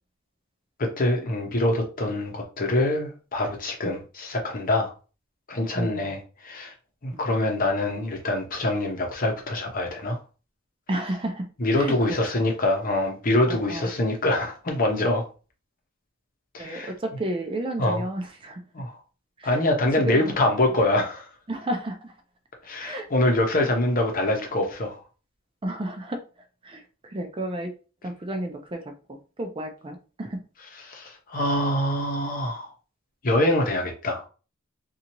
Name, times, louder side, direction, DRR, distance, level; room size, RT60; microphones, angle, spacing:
voice 1, 0.8-4.9 5.5-6.7 7.0-10.2 11.6-15.2 16.5-16.9 17.8-18.0 18.7-19.0 19.4-21.3 22.6-25.0 30.9-32.7 33.2-34.2, left 1 dB, 40° left, 2 dB, 0.8 m, -25 dB
voice 2, 5.7-6.1 7.1-7.2 10.9-11.5 11.7-12.4 13.5-13.9 16.6-18.6 19.4-19.6 20.0-20.4 21.5-22.1 22.8-23.1 23.5-23.7 25.6-26.2 26.6-27.7 28.0-28.8 29.1-30.4, right 1 dB, 25° right, 4 dB, 0.5 m, -32 dB
2.8 x 2.5 x 2.9 m, 0.34 s
head